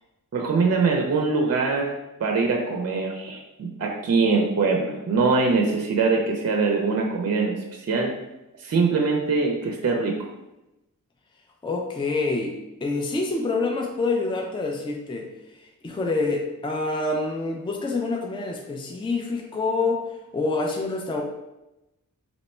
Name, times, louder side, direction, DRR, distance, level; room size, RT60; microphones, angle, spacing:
voice 1, 0.3-1.9 2.2-8.1 8.6-10.1, right 4 dB, 50° right, 1 dB, 0.5 m, -23 dB
voice 2, 11.6-21.2, left 3 dB, 15° left, 1 dB, 0.4 m, -27 dB
2.9 x 2.2 x 4.2 m, 0.95 s
wide cardioid pair, 115°, 34 cm